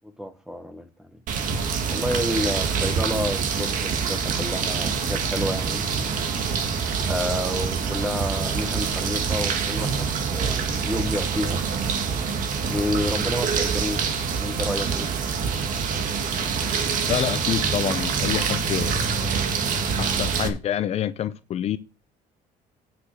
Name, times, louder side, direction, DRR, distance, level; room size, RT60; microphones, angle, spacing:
voice 1, 0.2-1.1 1.9-5.8 7.0-11.6 12.7-14.0 14.4-15.1, left 1 dB, 5° right, 1.2 m, -30 dB
sound 1, 1.3-20.5, right 6 dB, 55° right, 2.1 m, -25 dB
voice 2, 17.1-19.0 20.0-21.8, left 10 dB, 40° left, 0.6 m, -27 dB
9.6 x 6.0 x 6.5 m
cardioid pair, 165°, 16 cm